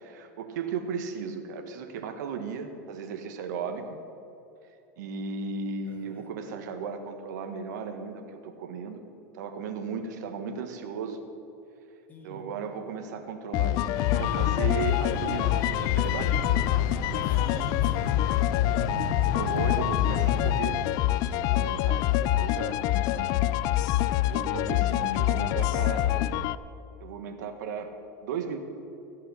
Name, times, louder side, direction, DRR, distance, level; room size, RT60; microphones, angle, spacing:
voice 1, 0.0-4.0 5.0-9.0 9.3-11.2 12.2-16.3 19.2-20.8 21.3-22.8 24.2-26.1 27.0-27.9 28.2-28.6, right 5 dB, 80° right, 6 dB, 1.6 m, -35 dB
voice 2, 5.8-6.4 12.1-12.5 17.2-19.5 25.9-26.2, left 2 dB, 15° left, 2 dB, 2.0 m, -46 dB
sound 1, 13.5-26.6, left 13 dB, 45° left, 0.4 m, -26 dB
sound 2, 13.9-20.6, left 4 dB, 65° left, 1.7 m, -34 dB
16.5 x 5.7 x 10.0 m, 2.7 s
supercardioid pair, 150°, 10 cm